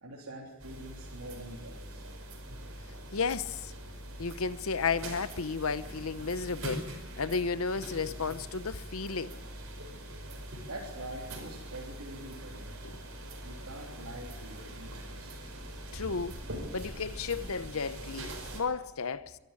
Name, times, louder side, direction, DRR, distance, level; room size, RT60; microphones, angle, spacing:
voice 1, 0.0-2.0 10.7-13.0 13.4-15.4, right 1 dB, 85° right, 3.4 m, -45 dB
sound 1, 0.6-18.6, right 1 dB, 65° right, 5.0 m, -43 dB
voice 2, 3.1-3.7 4.2-9.4 12.8-12.9 15.9-16.4 16.7-19.4, left 5 dB, 70° left, 0.9 m, -33 dB
23.5 x 13.0 x 9.7 m
head